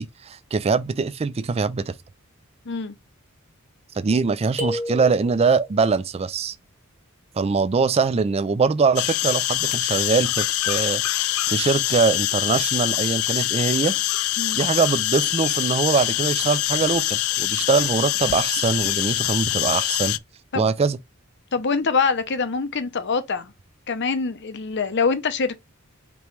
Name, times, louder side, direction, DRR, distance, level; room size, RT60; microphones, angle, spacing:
voice 1, 0.0-1.9 4.0-6.5 7.4-11.0 11.5-13.9 14.5-20.2 20.5-21.0, right 4 dB, 30° right, 0.4 m, -22 dB
sound 1, 4.6-5.7, equal, 10° right, 1.2 m, -30 dB
sound 2, 9.0-20.2, left 16 dB, 80° left, 0.3 m, -24 dB
voice 2, 21.5-23.5 23.9-25.6, left 4 dB, 55° left, 0.7 m, -24 dB
5.2 x 3.0 x 3.1 m
head